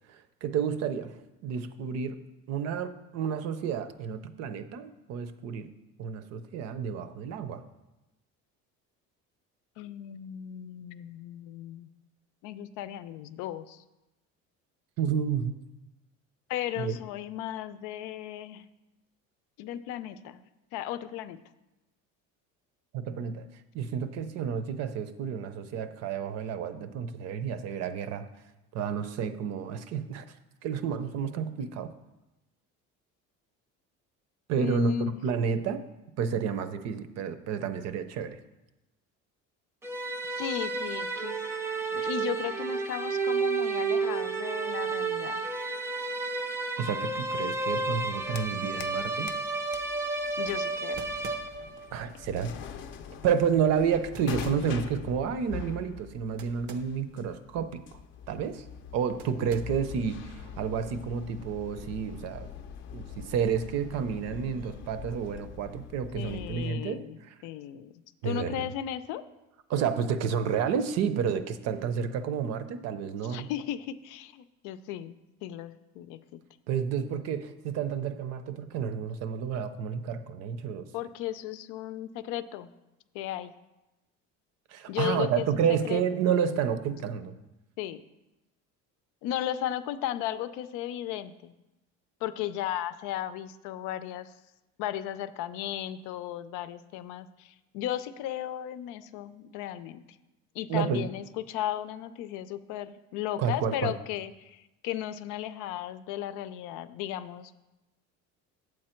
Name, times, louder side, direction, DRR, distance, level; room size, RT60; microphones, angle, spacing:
voice 1, 0.1-2.2 2.5-5.7 6.0-7.6 15.0-15.5 16.8-17.0 22.9-23.4 23.7-28.3 28.7-30.2 30.6-31.9 34.5-35.8 36.2-38.4 46.8-49.3 51.9-52.5 53.2-57.8 58.3-58.6 58.9-62.5 62.9-67.3 68.2-68.6 69.7-73.5 76.7-80.9 84.7-87.3 100.7-101.1 103.4-103.9, right 7 dB, 60° right, 11 dB, 0.7 m, -30 dB
voice 2, 9.8-11.9 12.4-13.8 16.5-18.6 19.6-20.4 20.7-21.4 34.6-35.2 40.2-41.4 41.9-45.4 50.4-51.1 66.1-67.9 68.2-69.2 73.2-75.2 75.4-76.4 80.9-82.7 83.1-83.5 84.9-86.0 87.8-88.0 89.2-91.5 92.2-94.3 94.8-100.0 100.5-107.5, left 11 dB, 85° left, 13 dB, 0.6 m, -35 dB
sound 1, 39.8-51.9, right 4 dB, 10° right, 0.3 m, -31 dB
sound 2, 47.9-49.0 49.3-66.7, left 7 dB, 40° left, 0.5 m, -43 dB
sound 3, 50.3-50.5 51.0-51.7 54.1-54.7 56.4-57.0 57.3-57.4 59.2-59.9, right 7 dB, 90° right, 0.8 m, -47 dB
8.5 x 7.8 x 4.4 m, 1.0 s
cardioid pair, 165°, 30 cm